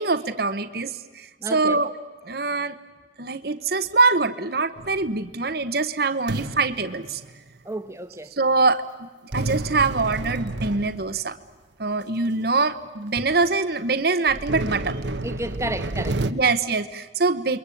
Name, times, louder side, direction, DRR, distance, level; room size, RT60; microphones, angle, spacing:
voice 1, 0.0-1.9 2.2-2.8 3.2-7.2 8.4-9.1 9.3-11.4 11.8-15.0 16.3-17.6, right 3 dB, 55° right, 1.1 m, -23 dB
voice 2, 1.4-1.8 7.6-8.3 15.2-16.3, right 1 dB, 15° right, 1.4 m, -32 dB
sound 1, 4.8-5.4 6.3-7.5 9.3-11.4 12.2-12.3 12.9-13.0 13.1-13.5 14.3-16.3, right 2 dB, 80° right, 1.1 m, -30 dB
29.5 x 23.0 x 8.5 m
head